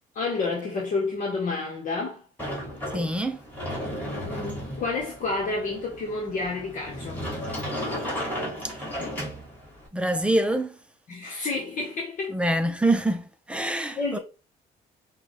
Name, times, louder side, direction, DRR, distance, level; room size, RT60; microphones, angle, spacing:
voice 1, 0.1-2.2 3.8-7.2 11.1-12.4 14.0-14.2, left 3 dB, 50° left, 1.3 m, -30 dB
Sliding door, 2.4-9.9, equal, 10° left, 2.5 m, -34 dB
voice 2, 2.9-3.4 9.9-10.8 12.3-14.2, right 1 dB, 5° right, 0.6 m, -25 dB
6.0 x 2.4 x 3.3 m
cardioid pair, 110°, 17 cm